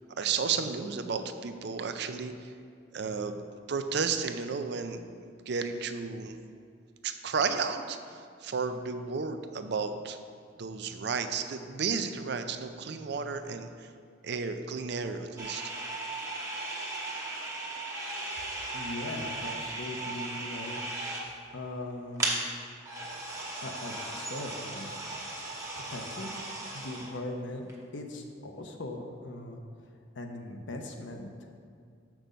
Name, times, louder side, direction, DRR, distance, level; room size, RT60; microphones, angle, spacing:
voice 1, 0.1-2.5 2.9-3.4 3.7-5.1 5.5-6.4 7.0-10.2 10.6-13.9 14.2-15.7, right 5 dB, 60° right, 8 dB, 0.5 m, -33 dB
sound 1, 15.4-21.5 21.9-22.0 22.2-22.4 22.8-27.1 27.7-27.8, right 2 dB, 15° right, 1.0 m, -36 dB
voice 2, 18.7-20.8 21.5-22.4 23.6-24.9 25.9-26.4 26.7-29.6 30.2-31.3, left 2 dB, 70° left, 3 dB, 0.8 m, -39 dB
6.8 x 6.1 x 5.0 m, 2.3 s
head